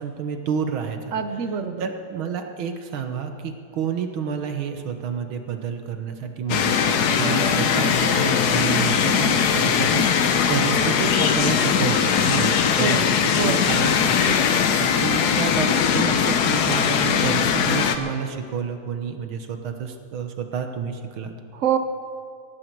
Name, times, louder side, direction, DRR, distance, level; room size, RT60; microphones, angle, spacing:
voice 1, 0.0-1.1 1.8-12.5 12.8-21.3, right 6 dB, 70° right, 6 dB, 1.9 m, -29 dB
voice 2, 1.1-1.8 12.8-13.1 13.4-13.6 21.5-21.8, right 8 dB, 55° right, 8 dB, 0.9 m, -25 dB
sound 1, 6.5-18.0, left 7 dB, 60° left, 1.2 m, -20 dB
16.5 x 15.5 x 4.7 m, 2.3 s
omnidirectional pair, 2.3 m